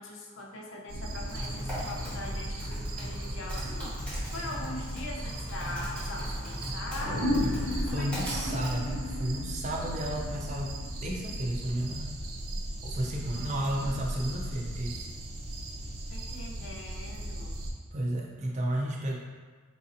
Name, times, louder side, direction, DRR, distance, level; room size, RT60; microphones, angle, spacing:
voice 1, 0.0-7.6 7.9-8.6 13.3-14.0 16.1-17.6, left 1 dB, 60° left, -1 dB, 0.5 m, -42 dB
sound 1, 0.9-17.7, right 1 dB, 80° right, 0.6 m, -37 dB
Typing, 1.1-9.3, equal, 5° left, 0.9 m, -39 dB
sound 2, 7.0-11.8, left 1 dB, 85° left, 0.9 m, -33 dB
voice 2, 7.9-10.8 11.0-12.1 12.8-15.1 17.9-19.2, right 1 dB, 35° right, -2 dB, 0.4 m, -32 dB
4.0 x 2.7 x 2.5 m, 1.5 s
head